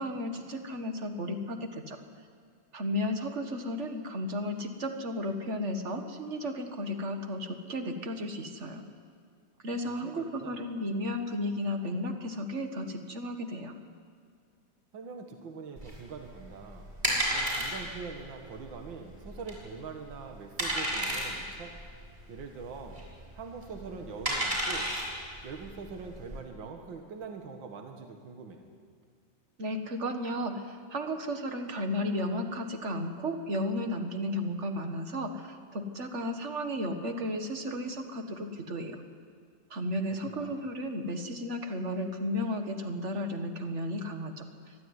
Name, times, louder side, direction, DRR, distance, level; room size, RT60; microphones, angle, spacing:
voice 1, 0.0-2.0 2.7-8.8 9.6-13.7 29.6-39.0 39.7-44.7, left 1 dB, 40° right, 6 dB, 1.7 m, -34 dB
voice 2, 10.0-10.6 14.9-16.9 17.3-21.7 22.3-23.0 23.4-24.9 25.4-28.6 40.3-40.7, right 5 dB, 70° right, 4 dB, 2.3 m, -43 dB
sound 1, 15.8-26.4, right 1 dB, 20° right, 6.2 m, -33 dB
23.5 x 13.0 x 9.6 m, 2.1 s
omnidirectional pair, 2.2 m